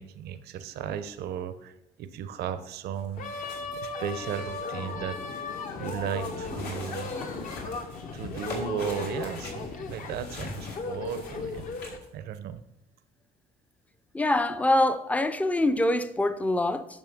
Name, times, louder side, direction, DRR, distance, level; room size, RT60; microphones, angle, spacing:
voice 1, 0.0-1.7 2.0-3.3 3.8-5.5 5.8-7.1 7.4-7.5 8.1-11.7 12.1-12.6, right 8 dB, 75° right, 0.6 m, -35 dB
sound 1, 3.0-12.1, left 2 dB, 75° left, 2.4 m, -45 dB
sound 2, 3.2-12.0, left 4 dB, 50° left, 1.0 m, -36 dB
voice 2, 14.1-16.9, left 1 dB, 10° left, 0.5 m, -24 dB
9.2 x 6.4 x 3.5 m
cardioid pair, 110°, 17 cm